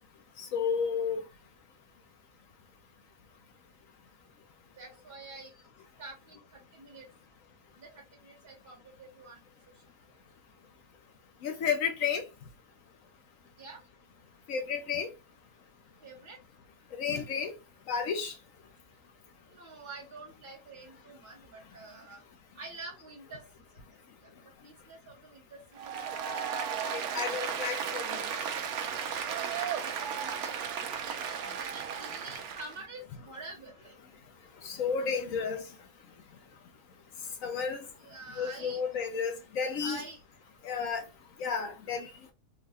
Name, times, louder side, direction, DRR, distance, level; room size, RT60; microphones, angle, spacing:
voice 1, 0.4-1.2 11.4-12.2 14.5-15.1 17.0-17.5 17.9-18.3 26.9-28.3 34.6-35.6 37.4-37.8 38.4-40.0 40.6-41.0 41.4-42.1, left 6 dB, 65° left, 0.9 m, -32 dB
voice 2, 4.8-5.5 6.0-7.1 7.8-9.4 13.6-13.8 16.0-16.4 19.5-22.2 22.6-23.4 24.6-26.1 29.2-33.9 38.0-38.8 39.8-40.2, right 3 dB, 40° right, 1.0 m, -47 dB
Applause, 25.8-32.8, right 7 dB, 75° right, 1.0 m, -35 dB
3.6 x 2.1 x 3.2 m
omnidirectional pair, 1.7 m